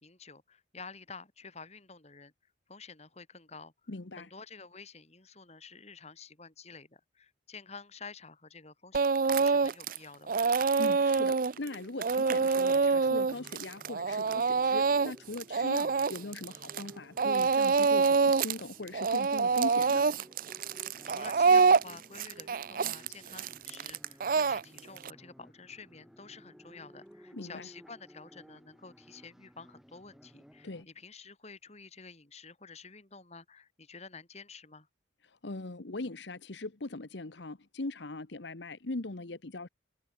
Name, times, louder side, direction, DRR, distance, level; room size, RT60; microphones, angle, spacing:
voice 1, 0.0-2.3 2.7-10.4 20.8-34.9, left 4 dB, 35° left, 3.3 m, -50 dB
voice 2, 3.9-4.3 10.8-20.1 27.3-27.7 30.6-30.9 35.2-39.7, left 2 dB, 65° left, 1.1 m, -40 dB
Speech / Crying sobbing, 8.9-10.0 10.3-16.9 17.2-18.6 18.9-25.1, right 4 dB, 45° right, 0.5 m, -26 dB
sound 1, 12.1-30.8, equal, ahead, 7.5 m, -57 dB
head